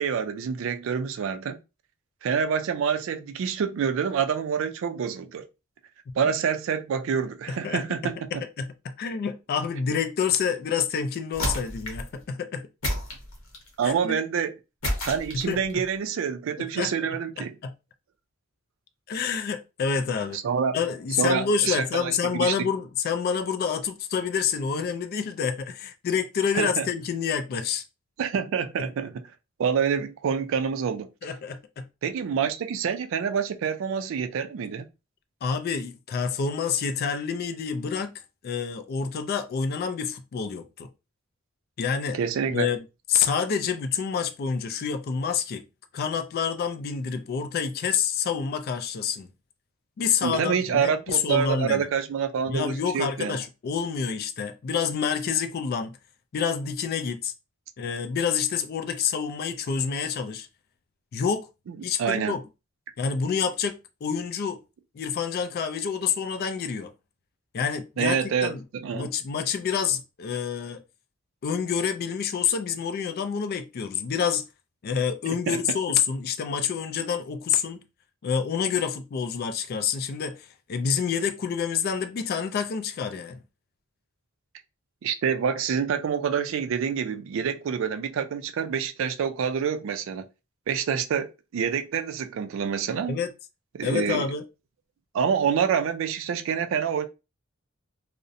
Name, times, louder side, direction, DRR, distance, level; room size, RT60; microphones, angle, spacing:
voice 1, 0.0-1.6 2.2-5.5 6.2-8.4 13.8-14.5 15.1-17.6 20.3-20.8 21.2-22.5 26.5-26.9 28.2-29.2 29.6-31.3 32.0-34.9 42.1-42.7 50.2-53.4 62.0-62.4 68.0-69.1 75.5-75.6 85.0-90.3 90.7-93.2 93.7-94.3 95.1-97.1, right 7 dB, 65° right, 0.3 m, -27 dB
voice 2, 7.5-7.8 8.6-12.6 13.8-14.2 15.3-15.8 16.6-16.9 17.4-17.7 19.1-20.4 20.7-27.8 31.2-31.9 35.4-38.1 38.4-40.9 41.8-42.2 42.5-42.8 43.1-45.6 45.9-49.3 50.0-51.9 52.5-55.9 56.3-57.3 57.8-60.5 61.1-61.5 61.8-62.4 63.0-64.6 64.9-66.9 67.5-68.6 68.9-70.8 71.4-74.4 74.8-77.8 78.2-83.4 93.1-93.3 93.8-94.4, left 6 dB, 45° left, 0.3 m, -28 dB
sound 1, 11.3-12.1 12.8-13.7 14.8-15.7, left 1 dB, 70° left, 0.8 m, -30 dB
2.5 x 2.0 x 2.6 m
head